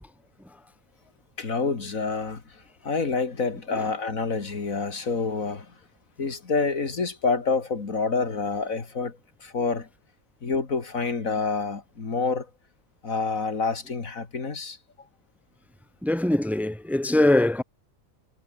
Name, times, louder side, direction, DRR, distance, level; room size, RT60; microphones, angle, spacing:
voice 1, 1.4-5.8 6.2-9.9 10.4-12.5 13.0-14.8, left 4 dB, 75° left, 3.0 m, -28 dB
voice 2, 16.0-17.6, left 1 dB, ahead, 1.4 m, -22 dB
omnidirectional pair, 1.4 m